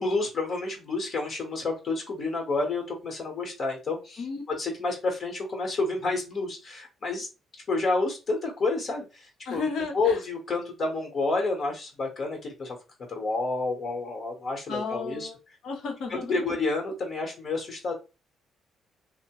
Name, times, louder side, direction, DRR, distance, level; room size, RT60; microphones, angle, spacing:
voice 1, 0.0-4.2 4.5-7.3 7.7-9.7 9.9-12.8 13.1-15.3 16.1-17.9, left 3 dB, 50° left, 2 dB, 1.1 m, -29 dB
voice 2, 9.4-10.2 14.7-15.4 15.6-16.4, left 4 dB, 75° left, 2 dB, 0.9 m, -33 dB
2.8 x 2.1 x 2.9 m, 0.29 s
cardioid pair, 90°, 0 cm